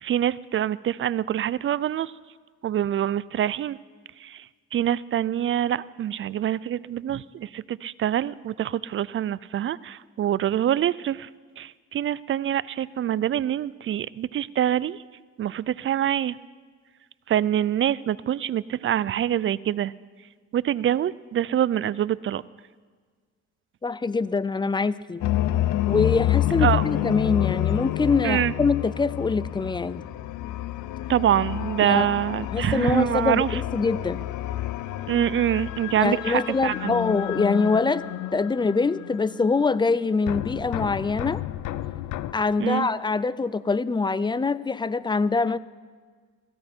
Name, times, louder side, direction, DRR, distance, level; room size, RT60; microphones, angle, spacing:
voice 1, 0.0-2.1 2.6-3.8 4.2-4.5 4.7-11.3 11.6-15.0 15.4-16.4 17.3-19.9 20.5-22.4 26.6-26.8 28.2-28.5 31.1-33.6 35.1-36.9 42.6-42.9, right 11 dB, 45° right, 20 dB, 0.4 m, -25 dB
voice 2, 23.8-25.2 25.9-30.0 31.8-32.1 32.4-34.3 36.0-38.0 38.3-41.4 42.3-45.6, left 4 dB, 15° left, 18 dB, 0.4 m, -24 dB
sound 1, 25.2-40.0 40.3-42.3, left 13 dB, 80° left, 0.6 m, -29 dB
16.5 x 15.5 x 4.4 m, 1.5 s
cardioid pair, 90°, 30 cm